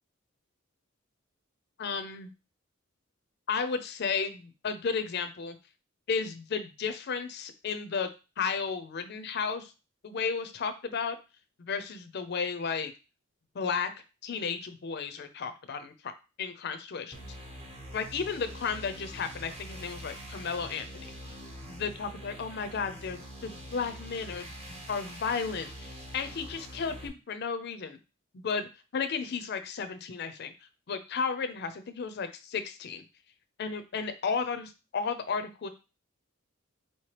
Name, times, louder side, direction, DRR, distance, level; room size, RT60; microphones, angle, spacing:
voice 1, 1.8-2.3 3.5-5.6 6.1-8.1 8.4-9.7 10.0-11.2 11.6-12.9 13.5-13.9 14.2-16.1 16.4-17.2 17.9-20.9 21.7-28.0 28.3-30.5 30.9-33.0 33.6-35.7, left 5 dB, 50° left, 8 dB, 0.4 m, -33 dB
sound 1, 17.1-27.1, equal, 30° right, 0.9 m, -44 dB
4.4 x 2.9 x 3.1 m, 0.30 s
head